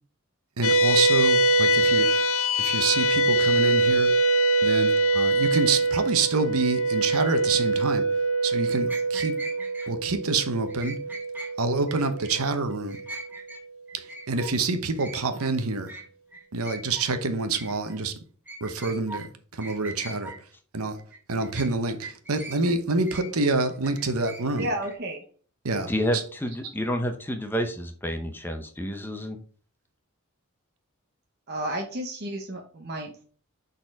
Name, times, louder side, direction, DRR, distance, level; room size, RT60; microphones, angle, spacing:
sound 1, 0.6-13.3, right 2 dB, 70° left, 0.7 m, -24 dB
voice 1, 0.6-2.1 2.6-4.1 4.6-8.1 8.4-9.4 9.9-11.0 11.6-13.0 13.9-15.9 16.5-18.2 18.6-19.3 19.5-20.3 20.7-21.0 21.3-24.7 25.6-26.2, right 3 dB, 80° right, 0.9 m, -27 dB
sound 2, 8.6-9.9 10.7-11.5 11.9-12.3 12.7-13.6 13.9-14.5 15.0-15.5 15.9-16.1 16.3-17.1 17.4-18.0 18.5-19.3 19.6-20.4 21.0-21.7 22.0-22.7 23.1-25.0, right 2 dB, 10° right, 1.2 m, -41 dB
voice 2, 24.5-25.2 31.5-33.2, right 1 dB, 45° right, 0.8 m, -32 dB
voice 3, 25.9-29.4, equal, 10° left, 0.7 m, -29 dB
6.6 x 4.1 x 4.7 m
head